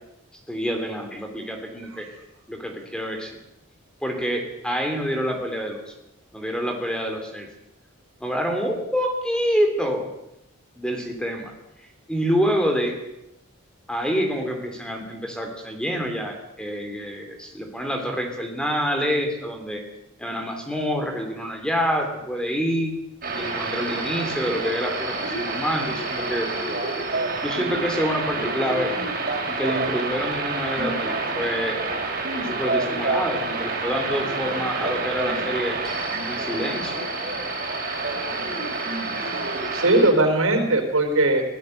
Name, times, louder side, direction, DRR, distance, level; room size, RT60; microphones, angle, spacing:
voice 1, 0.5-2.1 2.5-3.4 4.0-5.9 6.3-7.5 8.2-10.1 10.8-11.5 12.1-13.0 13.9-19.8 20.2-22.9 23.4-26.5 27.4-28.9 29.5-31.8 32.4-35.8 36.2-37.0, equal, 5° left, 4 dB, 3.0 m, -27 dB
sound 1, 23.2-40.1, right 3 dB, 45° right, 5.0 m, -28 dB
voice 2, 39.7-41.4, right 2 dB, 80° right, 5 dB, 4.4 m, -20 dB
23.5 x 18.0 x 6.6 m, 0.87 s
head